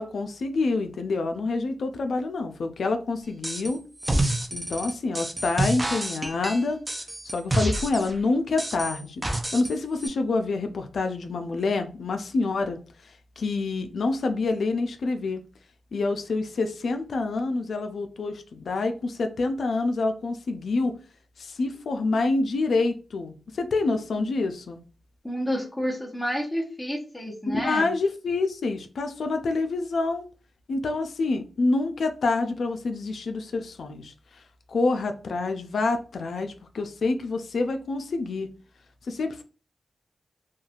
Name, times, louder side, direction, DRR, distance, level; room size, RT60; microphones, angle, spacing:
voice 1, 0.0-3.9 4.5-6.9 7.2-15.4 15.9-20.9 21.4-24.8 27.5-30.2 30.7-34.4 34.7-38.5 39.0-39.4, left 3 dB, 75° left, 0.3 m, -27 dB
sound 1, 3.4-3.7 4.0-8.1 8.6-9.7 10.0-10.1, right 1 dB, 15° right, 0.4 m, -28 dB
voice 2, 25.2-27.9, equal, 10° left, 0.8 m, -30 dB
3.0 x 2.3 x 2.4 m
cardioid pair, 75°, 0 cm